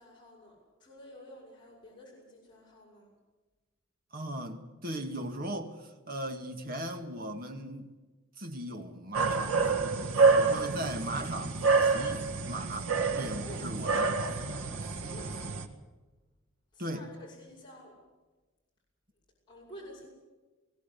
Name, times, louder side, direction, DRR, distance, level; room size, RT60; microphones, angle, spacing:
voice 1, 0.0-3.1 13.4-13.6 14.9-15.5 16.7-17.9 19.5-20.1, equal, 20° left, 6.6 m, -50 dB
voice 2, 4.1-7.9 8.4-9.7 10.4-14.4 16.8-17.1, right 1 dB, 40° right, 2.0 m, -38 dB
sound 1, 9.1-15.7, right 4 dB, 85° right, 1.8 m, -28 dB
21.5 x 16.5 x 8.5 m
head